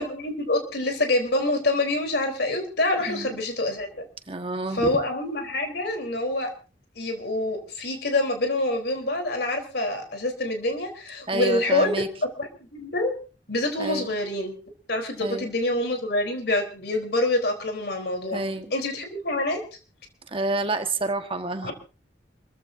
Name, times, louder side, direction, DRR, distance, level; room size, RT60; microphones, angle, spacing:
voice 1, 0.0-4.0 4.7-6.5 7.0-12.0 12.4-13.1 13.5-14.5 14.9-18.4 18.7-19.6 21.6-21.7, left 2 dB, 65° left, 4 dB, 3.9 m, -26 dB
voice 2, 4.3-4.9 11.3-12.1 13.8-14.1 15.2-15.5 18.3-18.7 20.3-21.7, right 2 dB, 30° right, 7 dB, 1.6 m, -29 dB
28.0 x 15.0 x 2.7 m, 0.34 s
head